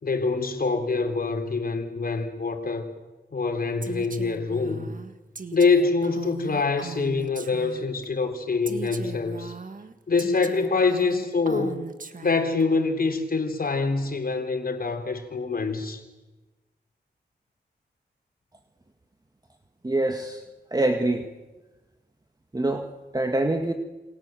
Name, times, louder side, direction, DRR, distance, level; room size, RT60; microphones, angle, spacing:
voice 1, 0.0-2.9 3.3-4.9 5.5-9.5 10.1-11.8 12.2-16.0, left 4 dB, 55° left, 3.9 m, -25 dB
Female speech woman speaking, 3.8-8.1 8.7-12.6, right 4 dB, 50° right, 1.7 m, -39 dB
voice 2, 19.8-20.4 20.7-21.3 22.5-22.9 23.1-23.7, right 2 dB, 20° right, 1.9 m, -24 dB
28.5 x 25.0 x 7.7 m
cardioid pair, 75°, 18 cm